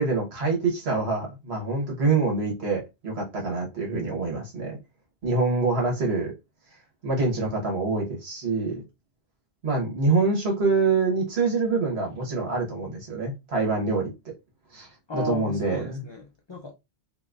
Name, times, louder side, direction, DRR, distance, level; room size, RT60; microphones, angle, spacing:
voice 1, 0.0-4.8 5.2-6.3 7.0-8.8 9.6-14.3 14.7-16.0, right 3 dB, 80° right, 1.5 m, -25 dB
voice 2, 15.1-16.7, left 3 dB, 45° left, 0.4 m, -34 dB
3.9 x 2.6 x 2.4 m
omnidirectional pair, 1.1 m